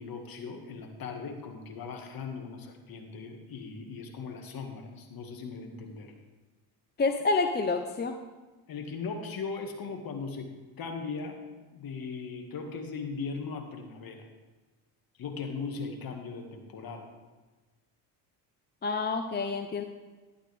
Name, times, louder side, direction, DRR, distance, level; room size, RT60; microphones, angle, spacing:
voice 1, 0.0-6.1 8.7-10.5 10.8-11.4 11.7-14.3 15.2-17.1, left 4 dB, 50° left, 4 dB, 2.0 m, -38 dB
voice 2, 7.0-8.2 18.8-19.8, left 3 dB, 20° left, 7 dB, 0.7 m, -28 dB
12.5 x 11.0 x 3.5 m, 1.2 s
supercardioid pair, 85°, 47 cm